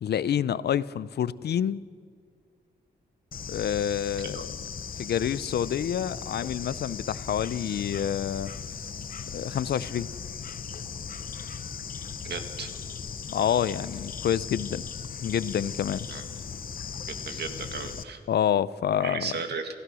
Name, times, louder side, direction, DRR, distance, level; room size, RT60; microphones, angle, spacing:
voice 1, 0.0-1.8 3.5-4.6 5.0-8.5 9.3-10.1 13.3-14.9 15.2-16.1 18.3-19.3, left 9 dB, 70° left, 18 dB, 0.5 m, -28 dB
Bird / Insect, 3.3-18.0, left 6 dB, 55° left, 0.9 m, -38 dB
voice 2, 12.2-12.7 16.1-16.2 17.1-18.2 19.0-19.7, right 5 dB, 75° right, 6 dB, 2.1 m, -35 dB
28.5 x 15.5 x 6.2 m, 2.1 s
wide cardioid pair, 150°, 17 cm